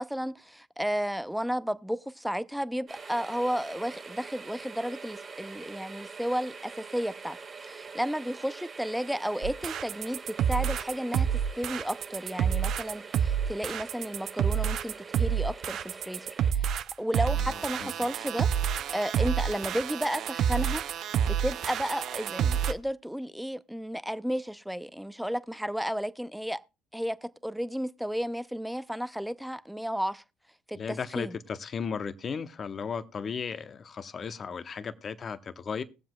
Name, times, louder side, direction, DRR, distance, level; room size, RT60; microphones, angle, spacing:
voice 1, 0.0-7.4 7.6-11.3 11.5-18.5 18.9-20.8 21.2-26.6 26.9-30.2 30.7-31.3, equal, ahead, 0.6 m, -33 dB
sound 1, 2.9-16.5, right 5 dB, 40° right, 1.7 m, -44 dB
sound 2, 9.4-22.7, right 8 dB, 60° right, 0.6 m, -28 dB
voice 2, 30.7-35.8, left 6 dB, 40° left, 0.9 m, -35 dB
20.5 x 7.4 x 2.3 m
hypercardioid pair, 55°, 0 cm